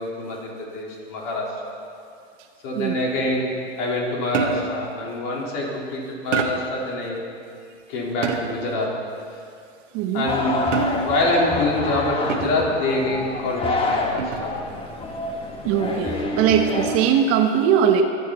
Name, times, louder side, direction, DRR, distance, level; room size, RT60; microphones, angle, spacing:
voice 1, 0.0-1.7 2.6-7.2 7.9-9.0 10.1-10.6 11.0-14.6 16.0-16.1, left 2 dB, 50° left, -3 dB, 4.1 m, -26 dB
sound 1, 4.3-4.9 6.3-6.8 8.2-8.7 10.7-11.3 12.3-12.8 14.2-14.6, right 5 dB, 80° right, 1.4 m, -27 dB
voice 2, 9.9-10.3 15.6-18.0, right 8 dB, 40° right, 5 dB, 1.0 m, -20 dB
sound 2, 10.3-17.0, left 2 dB, 15° left, 1.3 m, -27 dB
23.5 x 8.5 x 4.2 m, 2.4 s
hypercardioid pair, 125°, 36 cm